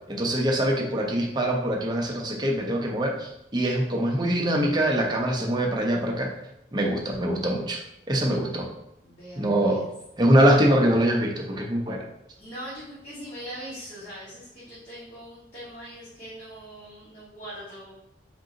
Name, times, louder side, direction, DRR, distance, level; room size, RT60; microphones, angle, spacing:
voice 1, 0.1-6.3 6.7-7.8 8.1-8.7 9.4-9.8 10.2-12.1, right 1 dB, 25° right, 0 dB, 0.6 m, -23 dB
voice 2, 9.0-9.9 12.4-17.9, equal, 35° left, -9 dB, 1.1 m, -41 dB
3.7 x 2.7 x 3.8 m, 0.82 s
head